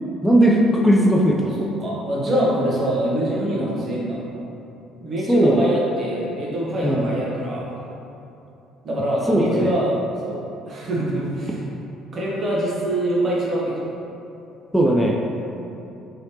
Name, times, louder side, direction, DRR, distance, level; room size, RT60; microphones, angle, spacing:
voice 1, 0.2-1.5 5.3-5.6 6.8-7.1 9.3-9.7 14.7-15.2, right 1 dB, 5° left, -3 dB, 0.3 m, -17 dB
voice 2, 1.6-4.2 5.0-7.8 8.8-10.4 10.6-11.6 12.1-13.9, right 1 dB, 45° right, -5 dB, 0.8 m, -24 dB
3.1 x 2.8 x 2.8 m, 2.8 s
hypercardioid pair, 55°, 0 cm